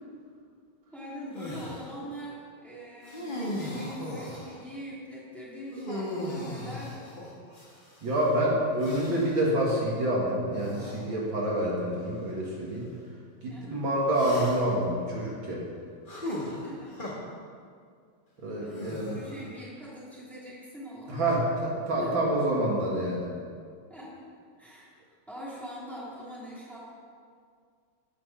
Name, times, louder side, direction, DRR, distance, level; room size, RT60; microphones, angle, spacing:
voice 1, 0.9-7.1 13.5-13.8 16.2-17.1 18.6-21.4 22.0-22.2 23.9-24.2 24.6-24.9 25.3-26.8, equal, ahead, -7 dB, 3.0 m, -42 dB
sound 1, 1.3-1.8 3.0-4.6 5.7-8.0 8.8-9.4 10.5-11.0 11.9-12.0 14.1-14.8 16.1-17.1 18.7-19.5, left 1 dB, 25° left, 2.1 m, -37 dB
voice 2, 8.0-12.9 13.4-15.7 18.4-19.2 21.1-23.3, right 1 dB, 65° right, -4 dB, 2.6 m, -27 dB
15.0 x 6.0 x 6.2 m, 2.1 s
omnidirectional pair, 2.3 m